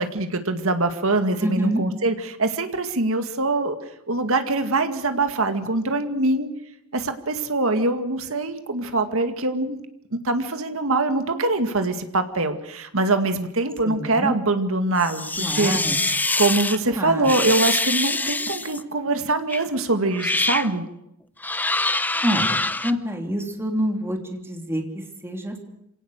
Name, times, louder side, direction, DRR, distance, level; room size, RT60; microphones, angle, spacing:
voice 1, 0.0-3.8 4.1-6.5 6.9-9.8 10.2-15.7 16.4-20.8, right 2 dB, 70° right, 7 dB, 2.2 m, -23 dB
voice 2, 1.4-1.8 13.8-14.4 15.4-16.0 16.9-17.3 22.2-22.6 22.8-25.6, equal, 10° right, 3 dB, 3.2 m, -27 dB
sound 1, 15.0-16.8 17.2-18.8 19.5-19.7 20.1-20.7 21.4-22.9, left 2 dB, 10° left, 0.8 m, -24 dB
27.0 x 18.0 x 6.6 m, 0.80 s
head